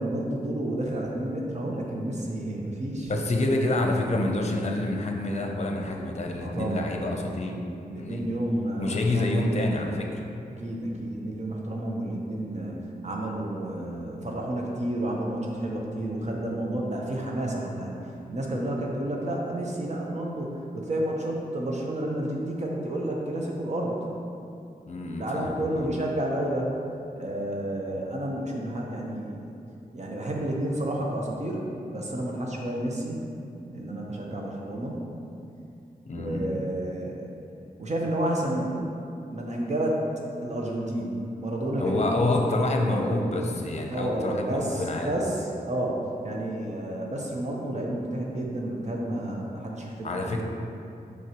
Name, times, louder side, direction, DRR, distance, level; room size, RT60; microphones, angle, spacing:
voice 1, 0.0-3.1 6.4-7.3 7.9-9.3 10.6-18.0 18.3-24.0 25.2-26.7 27.2-29.5 29.9-33.2 33.7-35.0 36.1-37.2 37.8-38.9 39.3-40.0 40.4-42.3 42.7-43.2 43.9-50.3, right 1 dB, 50° right, -2 dB, 0.9 m, -30 dB
voice 2, 3.1-7.6 8.0-8.2 8.8-10.2 24.9-25.9 36.1-36.7 41.8-45.1 50.0-50.4, left 2 dB, 45° left, 2 dB, 0.7 m, -27 dB
6.4 x 5.3 x 3.0 m, 2.5 s
wide cardioid pair, 100°, 15 cm